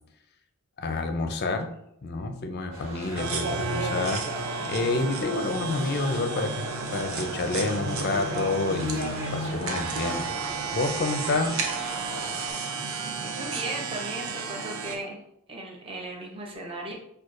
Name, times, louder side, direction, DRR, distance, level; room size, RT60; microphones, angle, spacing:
voice 1, 0.8-1.7 2.0-6.6 6.9-10.3 10.7-11.6, left 3 dB, 45° left, 6 dB, 0.4 m, -29 dB
sound 1, 2.7-12.5, right 1 dB, 90° right, 1.3 m, -37 dB
sound 2, 3.2-15.0, right 4 dB, 65° right, 0.6 m, -33 dB
voice 2, 13.2-15.2 15.5-16.9, right 2 dB, 25° right, 0 dB, 0.7 m, -36 dB
6.1 x 2.3 x 2.5 m, 0.76 s
head